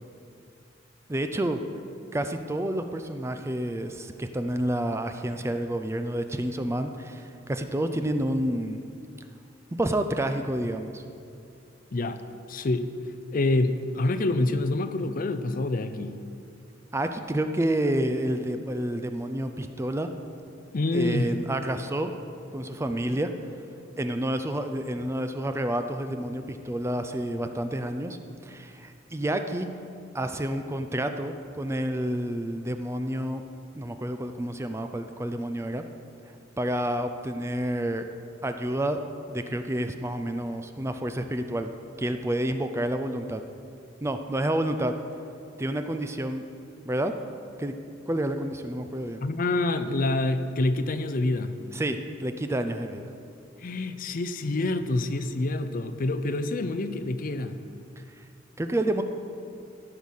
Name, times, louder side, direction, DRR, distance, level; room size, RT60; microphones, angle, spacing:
voice 1, 1.1-1.6 2.1-8.8 9.7-11.0 16.9-20.1 20.9-22.1 22.5-23.3 24.0-29.7 30.1-33.4 33.7-35.8 36.6-38.0 38.4-39.0 39.3-41.7 42.0-43.4 44.0-44.9 45.6-46.4 46.9-47.1 47.6-47.7 48.1-49.2 51.7-53.1 58.6-59.0, right 1 dB, 15° right, 7 dB, 0.4 m, -29 dB
voice 2, 11.9-12.2 12.5-12.9 13.3-16.2 20.7-21.3 49.2-51.6 53.6-57.6, left 2 dB, 45° left, 10 dB, 0.5 m, -27 dB
14.5 x 5.5 x 6.5 m, 2.5 s
head